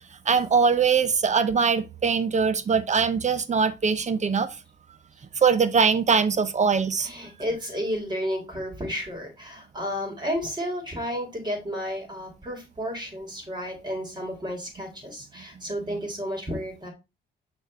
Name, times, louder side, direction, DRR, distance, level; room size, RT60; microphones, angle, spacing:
voice 1, 0.3-4.5 5.4-7.1 15.9-16.0, right 5 dB, 35° right, 0.8 m, -22 dB
voice 2, 7.0-16.9, equal, 20° right, 4.0 m, -32 dB
6.5 x 4.6 x 4.4 m
cardioid pair, 90°, 20 cm